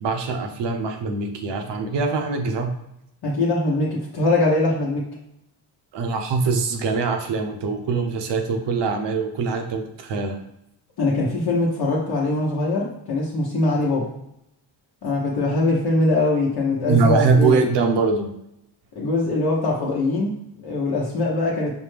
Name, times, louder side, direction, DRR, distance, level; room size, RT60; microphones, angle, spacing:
voice 1, 0.0-2.7 5.9-10.4 16.9-18.3, right 4 dB, 65° right, 4 dB, 0.8 m, -22 dB
voice 2, 3.2-5.0 11.0-14.1 15.0-17.6 19.0-21.8, left 2 dB, 55° left, -5 dB, 0.9 m, -22 dB
5.2 x 2.2 x 3.2 m, 0.80 s
cardioid pair, 95°, 46 cm